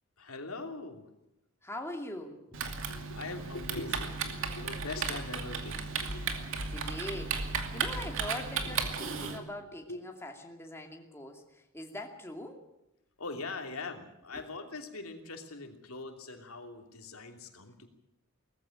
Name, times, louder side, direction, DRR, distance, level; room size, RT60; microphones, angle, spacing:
voice 1, 0.2-1.1 2.9-6.7 7.7-8.0 8.6-8.7 9.0-9.4 9.9-10.0 13.2-17.9, left 3 dB, 80° left, 5 dB, 2.9 m, -42 dB
voice 2, 1.6-2.6 6.5-12.6 14.3-14.4, left 1 dB, 10° left, 2 dB, 2.6 m, -42 dB
Typing, 2.5-9.4, right 5 dB, 65° right, 2.5 m, -35 dB
19.5 x 15.0 x 10.0 m, 0.88 s
head